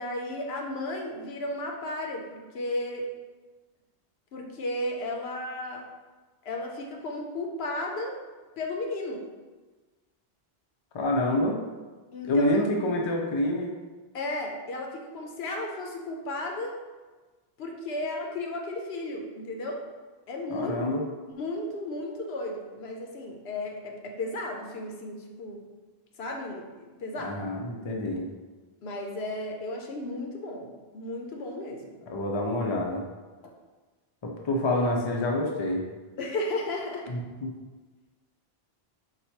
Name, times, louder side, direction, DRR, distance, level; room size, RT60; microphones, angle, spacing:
voice 1, 0.0-3.1 4.3-5.9 6.4-8.2 8.6-9.3 12.1-12.6 14.1-16.8 17.6-19.8 20.3-20.8 21.4-25.7 26.2-27.4 28.8-32.0 33.4-33.5 36.2-37.1, left 1 dB, 80° left, 1 dB, 0.9 m, -34 dB
voice 2, 10.9-11.6 12.3-13.7 20.5-21.0 27.2-28.3 32.1-33.0 34.2-35.8 37.1-37.5, left 1 dB, 40° left, 0 dB, 0.4 m, -27 dB
4.1 x 2.3 x 4.4 m, 1.3 s
omnidirectional pair, 1.1 m